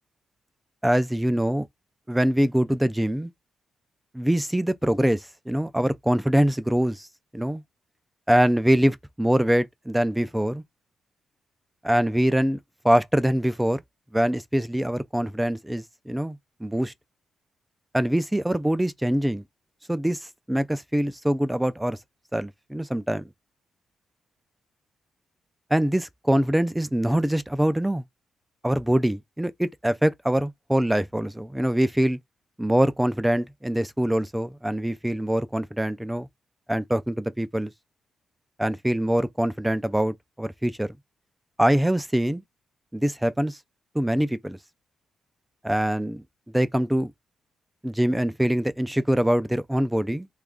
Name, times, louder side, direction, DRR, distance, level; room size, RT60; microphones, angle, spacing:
voice 1, 0.8-1.7 2.1-3.3 4.1-7.1 7.3-7.6 8.3-10.6 11.8-12.6 12.8-13.8 14.1-16.9 17.9-19.4 19.9-20.2 20.5-22.0 22.3-23.3 25.7-28.0 28.6-32.2 32.6-36.3 36.7-37.7 38.6-40.9 41.6-42.4 42.9-43.6 43.9-44.6 45.6-46.2 46.5-47.1 47.8-50.3, right 1 dB, 5° right, 0.3 m, -24 dB
3.0 x 2.4 x 3.5 m
cardioid pair, 95°, 0 cm